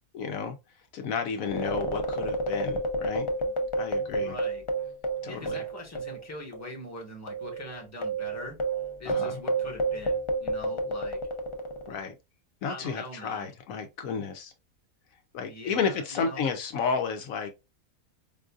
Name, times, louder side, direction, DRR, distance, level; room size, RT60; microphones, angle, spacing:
voice 1, 0.1-0.5 0.9-3.3 3.8-4.3 5.2-5.6 9.0-9.4 11.9-12.2 12.6-14.5 15.3-17.5, left 5 dB, 70° left, 1.0 m, -32 dB
sound 1, 1.4-6.3 6.5-6.7 7.3-12.0, right 2 dB, 55° left, 0.3 m, -30 dB
voice 2, 4.1-4.6 5.3-8.6 9.0-11.2 12.7-13.5 15.4-16.5, equal, 10° left, 1.0 m, -42 dB
5.2 x 2.5 x 2.3 m
omnidirectional pair, 1.5 m